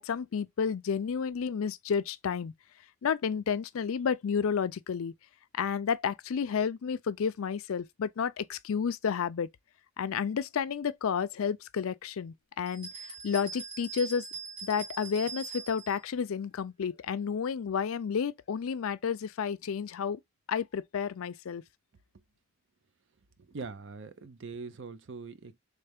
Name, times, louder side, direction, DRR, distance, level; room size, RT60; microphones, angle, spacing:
voice 1, 0.0-2.5 3.0-5.1 5.5-9.5 10.0-12.9 13.2-14.2 14.6-20.2 20.5-21.6, left 6 dB, 70° left, 0.4 m, -31 dB
sound 1, 12.7-16.0, right 5 dB, 20° right, 1.2 m, -42 dB
voice 2, 23.5-25.6, right 4 dB, 55° right, 0.5 m, -42 dB
3.3 x 3.3 x 3.4 m
head